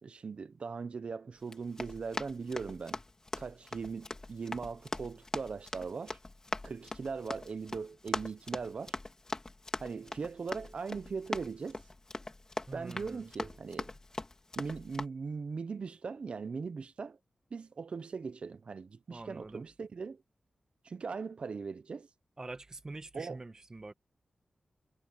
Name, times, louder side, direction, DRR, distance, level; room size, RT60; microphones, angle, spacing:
voice 1, 0.0-3.0 3.4-6.2 6.6-9.0 9.8-11.8 12.7-14.0 14.6-17.2 17.5-20.2 20.8-22.1 23.1-23.4, right 5 dB, 60° right, 1.0 m, -40 dB
Run, 1.4-15.1, left 2 dB, 30° left, 2.5 m, -42 dB
voice 2, 12.7-13.3 19.1-19.6 22.4-23.9, right 2 dB, 30° right, 1.5 m, -45 dB
wide cardioid pair, 105°, 2 cm